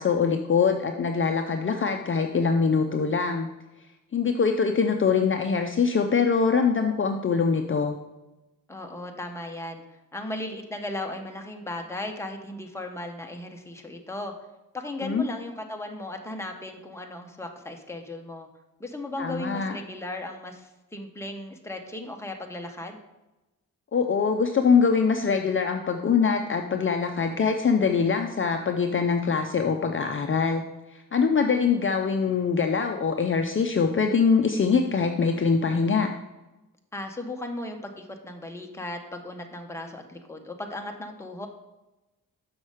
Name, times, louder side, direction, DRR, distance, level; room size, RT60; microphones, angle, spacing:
voice 1, 0.0-3.5 4.1-8.0 15.0-15.2 19.2-19.8 23.9-30.6 31.1-36.1, left 5 dB, 40° left, 4 dB, 0.6 m, -23 dB
voice 2, 8.7-9.8 10.1-14.3 14.7-18.5 18.8-23.0 36.9-41.5, left 1 dB, 10° left, 3 dB, 1.0 m, -36 dB
6.4 x 6.1 x 4.9 m, 1.0 s
wide cardioid pair, 100°, 34 cm